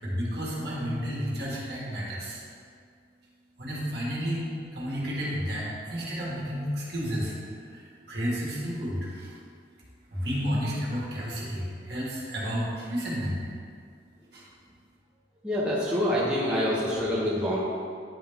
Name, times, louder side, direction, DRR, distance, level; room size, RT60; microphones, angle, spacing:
voice 1, 0.0-2.4 3.6-9.3 10.1-13.4 14.3-14.4, equal, 60° right, -6 dB, 1.8 m, -31 dB
voice 2, 15.4-17.6, equal, 5° right, -9 dB, 0.9 m, -26 dB
10.0 x 4.1 x 3.6 m, 2.2 s
head